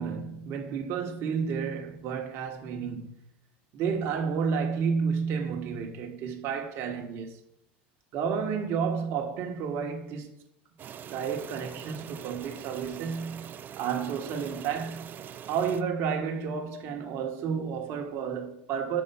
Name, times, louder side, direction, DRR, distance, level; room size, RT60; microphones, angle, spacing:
voice 1, 0.0-3.2 3.7-7.4 8.1-10.3 11.1-15.1 15.5-19.0, right 6 dB, 50° right, 1.3 m, -31 dB
sound 1, 10.8-15.8, right 9 dB, 35° right, 0.5 m, -43 dB
5.6 x 4.9 x 5.5 m
supercardioid pair, 110°, 6 cm